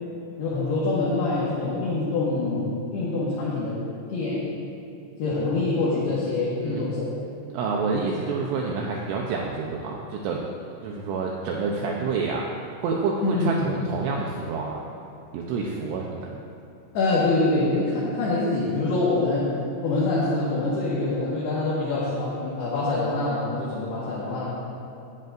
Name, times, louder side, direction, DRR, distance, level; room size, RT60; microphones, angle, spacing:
voice 1, 0.4-3.8 4.1-4.5 5.2-7.0 13.2-13.7 16.9-19.5 19.8-24.5, left 2 dB, 65° left, -7 dB, 3.1 m, -25 dB
voice 2, 7.5-10.5 10.8-12.5 12.8-14.8 15.3-16.3, right 4 dB, 80° right, -1 dB, 2.9 m, -28 dB
18.5 x 10.0 x 2.6 m, 2.8 s
omnidirectional pair, 5.9 m